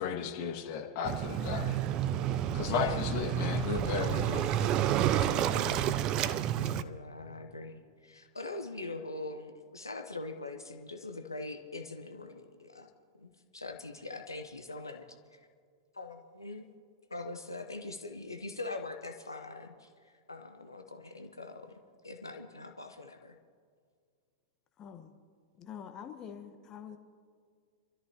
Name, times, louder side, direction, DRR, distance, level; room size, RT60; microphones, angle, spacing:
voice 1, 0.0-1.8 2.5-4.5, left 6 dB, 45° left, 2 dB, 2.1 m, -34 dB
Waves surf, 1.0-6.8, right 10 dB, 35° right, 0.6 m, -30 dB
voice 2, 2.7-3.1 5.3-5.9 6.6-12.9 13.2-15.1 15.3-15.4 15.9-16.7 17.1-19.9 20.3-23.4, left 2 dB, 85° left, 6 dB, 1.0 m, -42 dB
voice 3, 24.8-25.1 25.6-27.0, left 8 dB, 30° left, 6 dB, 1.1 m, -45 dB
26.5 x 13.5 x 2.9 m, 2.1 s
figure-of-eight pair, 95°, 2 cm